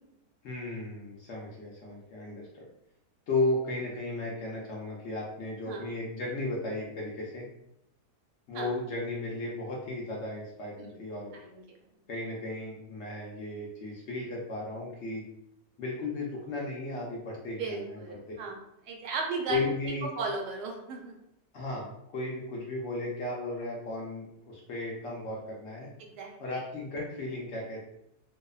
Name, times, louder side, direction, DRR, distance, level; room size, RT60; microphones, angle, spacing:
voice 1, 0.4-2.6 3.3-7.5 8.5-11.4 12.1-15.3 15.8-18.2 19.5-20.1 21.5-25.9 26.4-27.8, left 2 dB, 70° left, -3 dB, 0.6 m, -35 dB
voice 2, 17.6-18.6 18.9-19.6 19.9-21.1 26.2-26.3, right 4 dB, 85° right, 1 dB, 1.2 m, -35 dB
2.7 x 2.0 x 2.3 m, 0.80 s
omnidirectional pair, 1.7 m